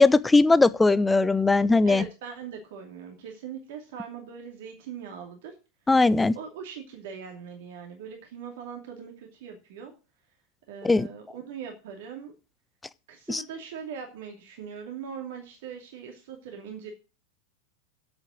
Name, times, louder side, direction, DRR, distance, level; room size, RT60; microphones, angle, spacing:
voice 1, 0.0-2.0 5.9-6.3 10.8-11.1 13.3-13.4, left 3 dB, 10° left, 0.5 m, -19 dB
voice 2, 1.8-5.5 6.3-9.9 10.7-12.3 13.1-16.9, right 7 dB, 55° right, 2.6 m, -40 dB
8.2 x 7.8 x 6.3 m
figure-of-eight pair, 90°, 0 cm